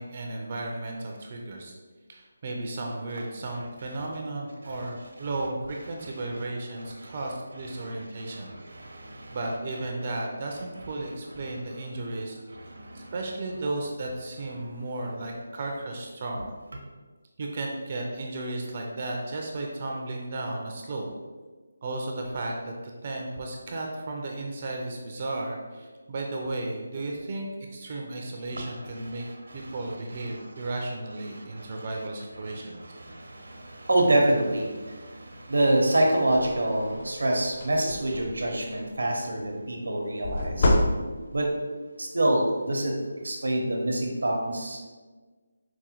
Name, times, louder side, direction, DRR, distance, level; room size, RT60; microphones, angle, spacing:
voice 1, 0.0-1.7 2.1-8.5 9.3-12.4 12.9-16.5 17.4-21.1 21.8-22.7 23.0-29.3 29.5-32.8, right 2 dB, 35° right, 0 dB, 0.4 m, -34 dB
voice 2, 6.0-6.3 6.8-7.2 7.7-9.4 11.4-11.6 12.1-12.2 12.5-13.1 28.5-30.7 31.3-31.9 32.4-40.7 41.3-41.5 42.0-42.9 43.2-44.9, right 1 dB, 85° right, 1 dB, 0.7 m, -28 dB
sound 1, 36.5-36.6 37.0-37.2 37.5-38.6 40.2-41.5, left 1 dB, 35° left, 0.4 m, -26 dB
4.7 x 2.2 x 2.8 m, 1.4 s
figure-of-eight pair, 170°, 0 cm